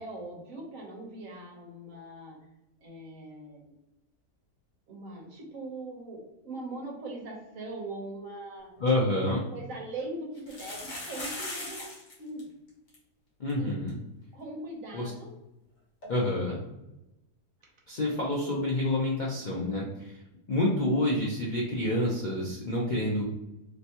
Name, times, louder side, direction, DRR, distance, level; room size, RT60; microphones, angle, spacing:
voice 1, 0.0-2.4 2.8-3.7 4.9-8.7 9.5-11.9 12.2-12.5 13.6-13.8 14.3-15.3 16.0-16.6, right 2 dB, 60° right, -1 dB, 1.2 m, -41 dB
voice 2, 8.8-9.4 13.4-13.9 14.9-15.1 16.1-16.6 17.9-20.2 20.5-23.2, left 1 dB, 90° left, -4 dB, 0.4 m, -28 dB
sound 1, 8.8-8.9 9.2-9.3 10.4-12.1 12.4-12.5 12.7-13.0 13.5-13.6 13.9-14.0 16.0-16.1, left 2 dB, 50° left, 1.5 m, -39 dB
3.3 x 3.1 x 2.8 m, 0.91 s
omnidirectional pair, 1.8 m